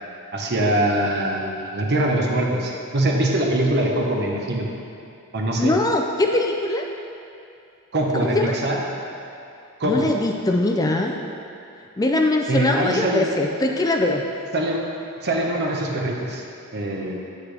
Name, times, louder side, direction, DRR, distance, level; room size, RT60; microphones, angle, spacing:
voice 1, 0.3-4.7 5.3-5.8 7.9-8.8 9.8-10.1 12.5-13.3 14.5-14.8 15.2-16.4 16.7-17.2, right 1 dB, 50° right, 0 dB, 1.0 m, -23 dB
voice 2, 5.6-6.8 8.1-8.5 9.8-11.2 12.0-14.2, left 2 dB, 15° left, 2 dB, 0.4 m, -21 dB
8.4 x 8.2 x 3.4 m, 2.6 s
head